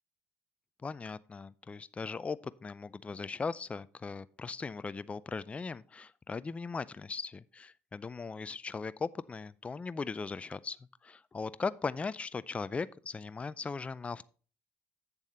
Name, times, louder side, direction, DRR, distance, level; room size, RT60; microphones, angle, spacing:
voice 1, 0.8-10.8 11.0-14.2, left 4 dB, 20° left, 0.4 m, -38 dB
8.3 x 7.1 x 4.3 m
supercardioid pair, 75°, 6 cm